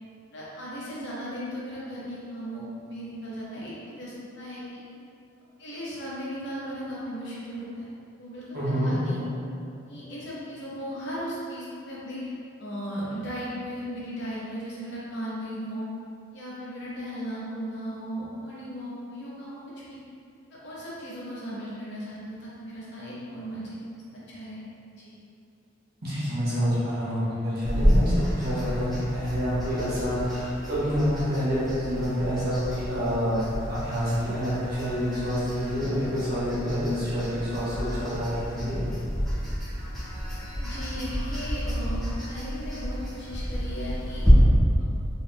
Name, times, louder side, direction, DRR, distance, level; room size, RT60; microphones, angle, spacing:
voice 1, 0.3-4.8 5.6-7.9 8.2-9.3 9.9-12.3 12.6-15.9 16.3-19.6 19.9-20.0 20.5-24.0 24.3-24.6 24.9-25.1 40.5-44.2 44.8-44.9, equal, 55° left, -7 dB, 0.9 m, -36 dB
voice 2, 8.5-9.0 26.0-33.4 33.7-38.8, equal, 45° right, -11 dB, 1.3 m, -27 dB
sound 1, 27.6-44.3, equal, ahead, 1.4 m, -31 dB
4.0 x 3.5 x 2.3 m, 2.5 s
head